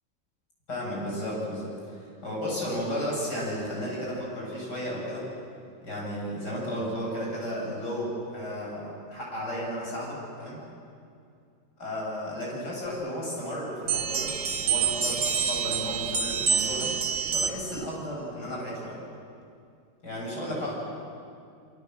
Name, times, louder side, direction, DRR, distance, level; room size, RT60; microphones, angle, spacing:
voice 1, 0.7-5.3 5.8-10.6 11.8-14.3 14.6-16.9 17.3-19.0 20.0-20.8, equal, 65° left, -4 dB, 8.7 m, -33 dB
sound 1, 13.9-17.8, right 6 dB, 60° right, 2.0 m, -27 dB
28.5 x 24.0 x 7.8 m, 2.4 s
omnidirectional pair, 1.9 m